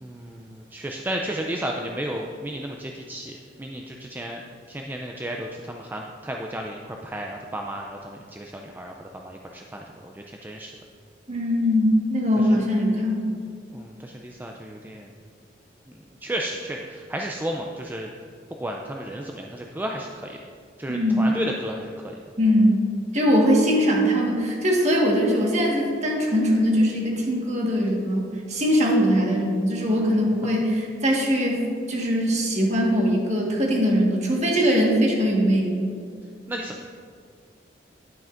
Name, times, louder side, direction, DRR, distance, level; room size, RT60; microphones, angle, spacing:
voice 1, 0.0-4.4 4.7-10.7 13.7-15.1 16.2-18.1 18.6-20.4 20.8-22.1 36.5-36.9, right 1 dB, 10° right, 1 dB, 0.4 m, -33 dB
voice 2, 11.3-13.4 20.9-21.2 22.4-22.8 23.1-31.6 31.9-35.8, equal, 40° right, -1 dB, 1.5 m, -21 dB
10.5 x 9.0 x 2.5 m, 2.2 s
head